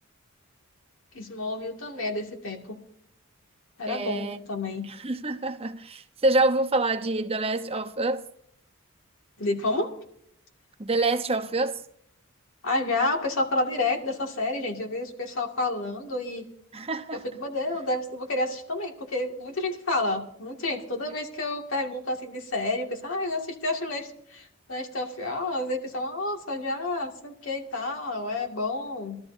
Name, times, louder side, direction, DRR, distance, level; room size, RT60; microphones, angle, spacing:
voice 1, 1.1-2.8 3.8-4.9 9.4-9.9 12.6-16.5 17.1-29.2, left 2 dB, 65° left, 2.3 m, -30 dB
voice 2, 3.9-4.4 4.9-8.3 10.8-11.8 16.7-17.2, right 2 dB, 30° right, 0.9 m, -26 dB
21.5 x 13.5 x 2.8 m
head